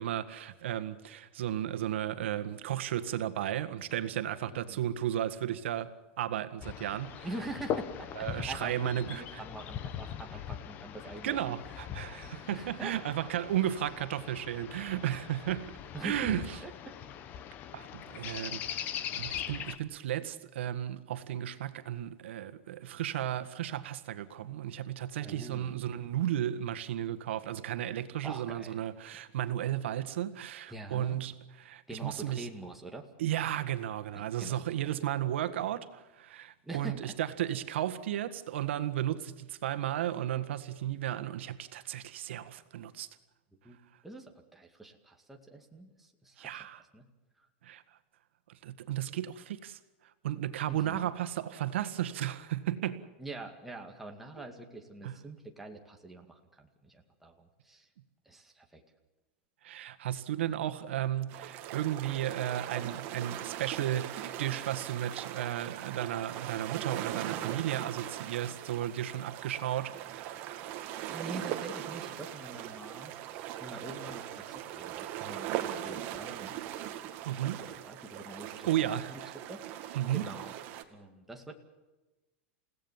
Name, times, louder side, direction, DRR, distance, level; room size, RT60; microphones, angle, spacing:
voice 1, 0.0-7.3 8.2-9.4 11.2-15.7 16.0-16.6 17.7-18.9 19.1-32.5 33.2-43.1 46.4-46.8 47.6-47.8 48.6-49.8 50.2-53.0 55.0-55.1 59.6-70.4 77.3-77.6 78.7-79.4 79.9-80.3, right 11 dB, 85° right, 1.7 m, -34 dB
voice 2, 4.5-4.9 7.2-11.6 12.5-12.9 15.9-16.9 25.2-25.9 28.2-28.8 30.7-31.2 31.9-33.1 34.1-34.7 36.6-37.0 43.6-43.8 44.0-46.5 46.9-47.1 47.4-47.5 50.7-51.1 53.2-57.9 58.3-58.8 71.1-76.9 77.6-79.2 79.5-80.5 80.9-81.5, right 2 dB, 5° right, 2.2 m, -45 dB
sound 1, 6.6-19.8, left 9 dB, 30° left, 1.2 m, -41 dB
sound 2, 61.3-80.8, right 12 dB, 40° right, 2.0 m, -40 dB
29.5 x 17.0 x 7.4 m
supercardioid pair, 165°, 6 cm